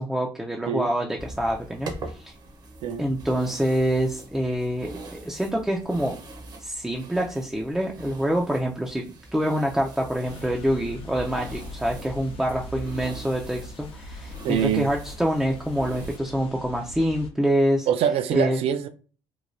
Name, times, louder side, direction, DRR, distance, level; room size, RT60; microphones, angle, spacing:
voice 1, 0.0-2.3 3.0-6.2 6.6-9.0 9.3-17.9 18.3-18.6, equal, 5° right, 0.4 m, -26 dB
sound 1, 1.2-16.2, right 2 dB, 45° right, 0.7 m, -43 dB
sound 2, 10.2-17.3, equal, 65° left, 0.6 m, -41 dB
voice 2, 14.4-14.9 17.9-18.9, right 9 dB, 70° right, 0.4 m, -24 dB
3.0 x 2.2 x 2.5 m
cardioid pair, 100°, 10 cm